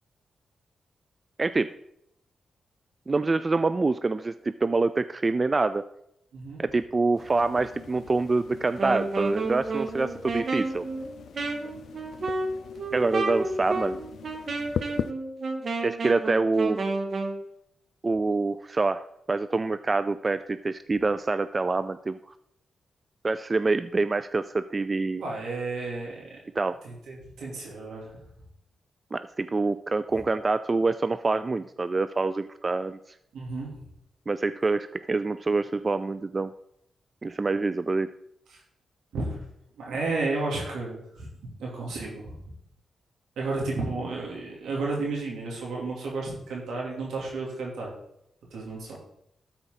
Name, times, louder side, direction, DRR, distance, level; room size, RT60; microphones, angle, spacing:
voice 1, 1.4-1.7 3.1-5.8 6.6-10.8 12.9-14.0 15.8-16.8 18.0-22.2 23.2-25.2 26.6-26.8 29.1-33.0 34.3-36.5 37.2-38.1, right 3 dB, 40° right, 12 dB, 0.3 m, -26 dB
sound 1, 7.1-15.1, left 8 dB, 80° left, 0.3 m, -40 dB
Wind instrument woodwind instrument, 8.7-17.4, right 3 dB, 60° right, 1.1 m, -31 dB
voice 2, 25.2-26.4 26.8-28.2 33.3-33.7 38.5-38.6 39.1-39.4 39.8-41.3 41.6-42.4 43.4-47.9 48.5-49.0, right 3 dB, 85° right, -2 dB, 2.7 m, -32 dB
13.0 x 4.5 x 3.8 m, 0.76 s
supercardioid pair, 50°, 0 cm